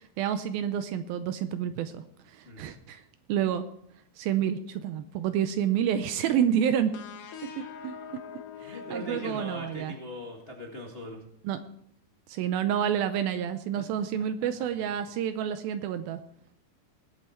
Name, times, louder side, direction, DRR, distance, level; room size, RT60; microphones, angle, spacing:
voice 1, 0.0-3.0 3.3-3.6 4.2-6.9 7.6-7.9 8.6-9.9 11.4-11.6 12.3-16.2, right 9 dB, 80° right, 10 dB, 2.3 m, -29 dB
voice 2, 2.4-2.8 7.8-7.9 8.6-11.2 13.8-13.9, left 1 dB, 45° left, -1 dB, 0.7 m, -40 dB
sound 1, 6.9-10.5, left 6 dB, 65° left, 2.5 m, -44 dB
20.0 x 8.1 x 4.4 m, 0.72 s
omnidirectional pair, 4.6 m